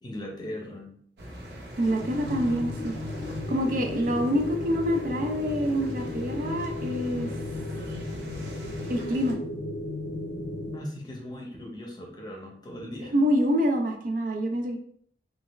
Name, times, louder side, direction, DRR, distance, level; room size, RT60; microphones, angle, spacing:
voice 1, 0.0-1.0 10.7-13.1, left 1 dB, 25° left, 0 dB, 0.7 m, -38 dB
sound 1, 1.2-9.3, equal, 75° right, 0.8 m, -42 dB
voice 2, 1.8-2.9 3.5-7.4 8.9-9.4 13.1-14.8, equal, 50° right, 3 dB, 0.4 m, -26 dB
sound 2, 2.0-10.8, left 2 dB, 80° left, 0.6 m, -35 dB
3.2 x 2.3 x 3.0 m, 0.63 s
head